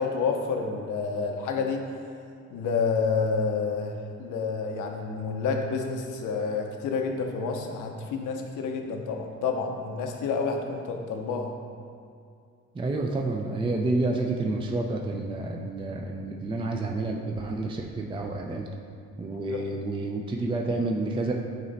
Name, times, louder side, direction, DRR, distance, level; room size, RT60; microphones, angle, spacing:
voice 1, 0.0-1.8 2.5-3.9 4.2-11.5 15.4-15.5 19.4-19.6, left 5 dB, 80° left, 3 dB, 0.8 m, -29 dB
voice 2, 12.8-18.7 19.2-21.3, right 2 dB, 15° right, 1 dB, 0.5 m, -29 dB
8.8 x 3.1 x 4.0 m, 2.4 s
cardioid pair, 90°, 30 cm